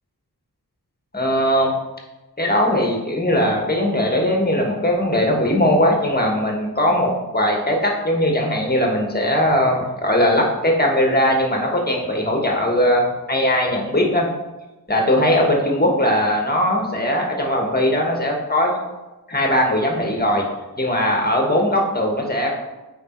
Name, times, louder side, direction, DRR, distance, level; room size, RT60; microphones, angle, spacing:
voice 1, 1.1-1.7 2.4-14.3 14.9-18.8 19.3-20.5 20.8-22.6, left 1 dB, 25° left, 0 dB, 1.4 m, -19 dB
8.8 x 3.5 x 4.5 m, 1.1 s
wide cardioid pair, 70°, 39 cm